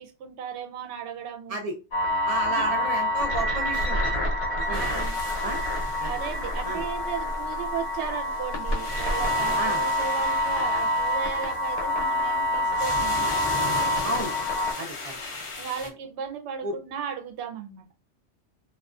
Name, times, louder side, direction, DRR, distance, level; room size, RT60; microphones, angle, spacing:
voice 1, 0.0-1.6 2.4-2.7 4.6-5.2 6.0-13.3 15.6-17.8, right 7 dB, 70° right, 0.8 m, -35 dB
sound 1, 1.9-14.7, left 1 dB, 70° left, 1.1 m, -27 dB
voice 2, 2.2-4.2 4.6-4.9 5.4-5.6 6.0-6.1 6.6-6.8 9.6-9.8 14.0-14.3 14.8-15.2 16.6-16.7, right 1 dB, 50° right, 0.4 m, -32 dB
sound 2, 4.7-15.9, left 3 dB, 50° left, 0.4 m, -38 dB
2.3 x 2.3 x 2.4 m
omnidirectional pair, 1.2 m